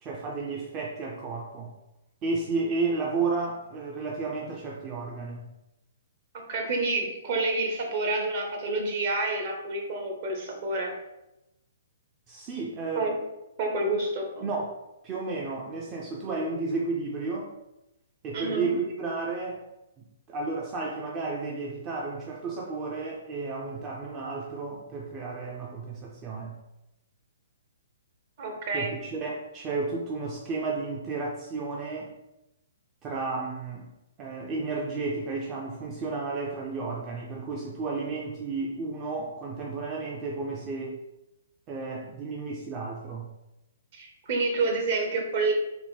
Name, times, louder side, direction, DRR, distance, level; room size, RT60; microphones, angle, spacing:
voice 1, 0.0-1.7 2.2-5.4 12.3-13.1 14.4-14.7 15.0-17.5 18.2-19.6 20.0-26.6 28.7-32.1 33.0-33.9 34.2-41.0 41.7-43.3, right 3 dB, 25° right, -2 dB, 0.5 m, -32 dB
voice 2, 6.3-10.9 12.9-13.2 13.6-14.4 18.3-18.7 28.4-28.9 43.9-45.5, right 2 dB, 50° right, 1 dB, 1.0 m, -28 dB
3.6 x 2.1 x 4.1 m, 0.91 s
hypercardioid pair, 135°, 0 cm